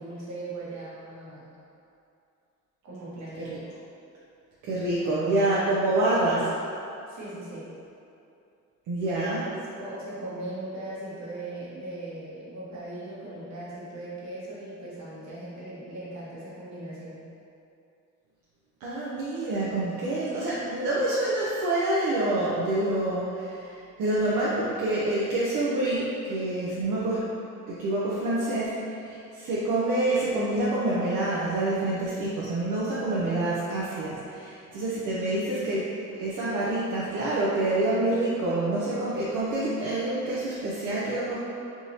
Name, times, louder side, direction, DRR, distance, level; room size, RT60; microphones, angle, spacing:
voice 1, 0.0-1.5 2.8-3.8 5.0-5.5 7.1-7.7 9.1-17.3, right 1 dB, 65° right, -8 dB, 1.2 m, -39 dB
voice 2, 4.6-6.5 8.9-9.4 18.8-27.3 27.7-41.4, right 2 dB, 80° right, -8 dB, 0.6 m, -27 dB
3.5 x 2.9 x 2.7 m, 2.6 s
cardioid pair, 90°, 30 cm